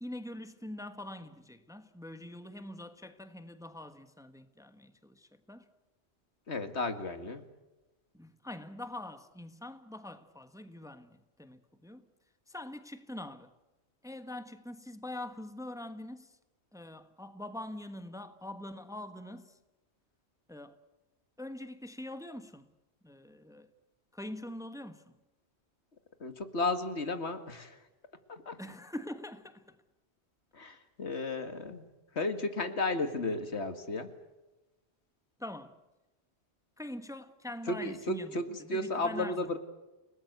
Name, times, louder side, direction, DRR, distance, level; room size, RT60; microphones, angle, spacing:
voice 1, 0.0-5.7 8.1-12.0 12.5-13.5 14.0-16.4 16.7-19.6 20.5-20.8 21.4-22.7 23.0-23.7 24.1-25.1 28.6-29.8 35.4-35.8 36.8-39.6, left 1 dB, 5° right, 1.2 m, -44 dB
voice 2, 6.5-7.4 26.2-27.8 28.3-28.6 30.5-31.8 32.1-34.1 37.7-39.6, left 2 dB, 80° left, 2.2 m, -34 dB
30.0 x 19.0 x 8.1 m
omnidirectional pair, 1.1 m